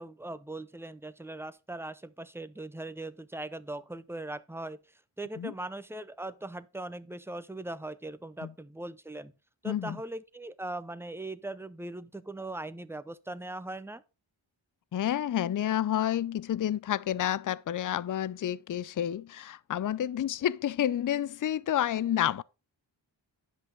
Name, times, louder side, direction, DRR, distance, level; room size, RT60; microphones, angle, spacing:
voice 1, 0.0-9.3 9.6-14.0, right 2 dB, 5° right, 0.6 m, -40 dB
voice 2, 9.7-10.0 14.9-22.4, left 11 dB, 45° left, 0.4 m, -29 dB
10.0 x 5.7 x 4.0 m
wide cardioid pair, 55°, 48 cm